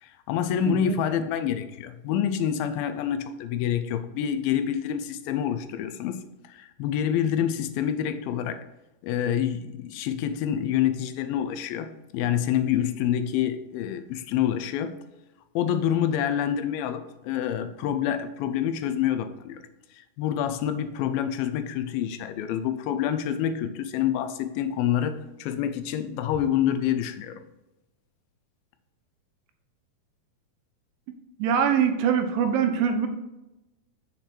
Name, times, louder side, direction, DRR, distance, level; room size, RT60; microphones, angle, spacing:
voice 1, 0.0-8.7 9.0-15.0 15.6-19.6 19.9-27.4, left 9 dB, 85° left, 2.3 m, -27 dB
voice 2, 0.7-1.0 31.4-33.1, right 7 dB, 80° right, 2.3 m, -23 dB
6.7 x 4.4 x 4.3 m
omnidirectional pair, 4.3 m